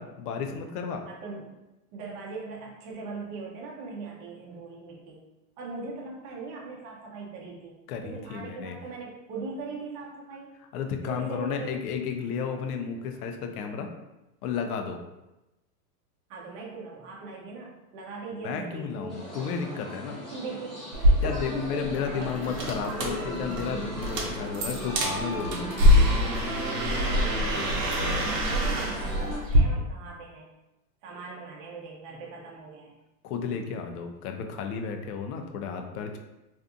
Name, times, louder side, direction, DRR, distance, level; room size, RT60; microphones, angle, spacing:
voice 1, 0.0-1.0 7.9-8.8 10.7-13.9 14.4-15.0 18.4-20.2 21.2-25.7 33.2-36.2, left 6 dB, 70° left, 5 dB, 0.6 m, -33 dB
voice 2, 1.1-1.5 1.9-5.2 5.6-7.7 8.0-10.6 11.0-11.8 16.3-19.2 20.1-23.7 26.9-30.5 31.0-32.9, right 3 dB, 35° right, -2 dB, 0.6 m, -40 dB
sound 1, 19.1-29.4, equal, ahead, 0.4 m, -37 dB
sound 2, 20.9-29.6, left 1 dB, 85° right, 0.8 m, -25 dB
2.6 x 2.4 x 2.5 m, 0.98 s
hypercardioid pair, 130°, 48 cm